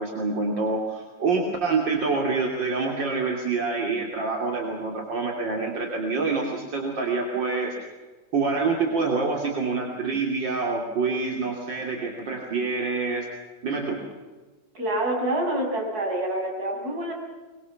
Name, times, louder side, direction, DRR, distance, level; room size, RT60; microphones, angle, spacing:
voice 1, 0.0-7.7 8.3-13.3 13.6-14.0, right 4 dB, 75° right, 0 dB, 3.6 m, -26 dB
voice 2, 14.7-17.1, right 1 dB, 55° right, 0 dB, 6.8 m, -27 dB
24.0 x 23.0 x 7.2 m, 1.3 s
omnidirectional pair, 2.0 m